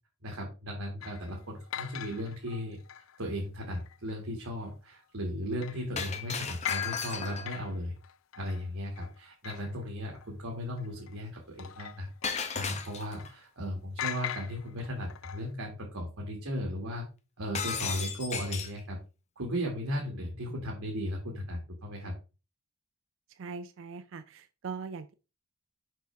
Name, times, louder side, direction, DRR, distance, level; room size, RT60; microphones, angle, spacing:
voice 1, 0.2-2.8 3.2-7.9 8.3-12.1 12.5-17.1 17.4-19.0 19.4-22.1, equal, 90° right, 1.9 m, -36 dB
sound 1, 1.0-3.2 3.7-4.2 4.6-4.8 5.6-9.9 10.1-10.3 10.7-11.2 11.6-13.7 14.0-15.5, left 10 dB, 70° left, 0.4 m, -42 dB
Shatter, 6.0-7.6 12.2-13.3 17.5-18.8, left 6 dB, 30° left, 0.7 m, -35 dB
voice 2, 23.3-25.1, right 5 dB, 65° right, 0.4 m, -41 dB
6.0 x 5.8 x 3.3 m
head